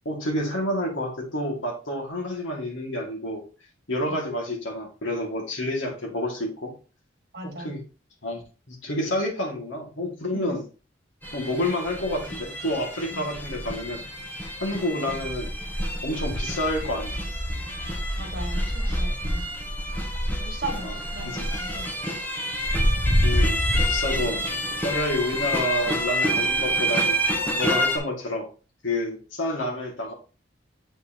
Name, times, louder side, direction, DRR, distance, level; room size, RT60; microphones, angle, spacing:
voice 1, 0.1-3.4 3.9-6.7 7.4-7.8 8.2-8.4 8.7-10.6 11.3-14.0 14.6-15.5 16.0-17.2 19.1-19.2 20.8-20.9 21.2-21.5 23.2-24.4 24.8-27.2 27.6-28.5 28.8-30.1, left 1 dB, 90° left, 0 dB, 2.2 m, -29 dB
voice 2, 7.3-7.7 10.3-10.5 13.1-13.2 18.2-19.5 20.4-22.2, right 2 dB, 55° right, 3 dB, 1.9 m, -37 dB
sound 1, 11.2-28.0, equal, 10° left, 1.3 m, -27 dB
7.9 x 5.7 x 2.9 m, 0.35 s
head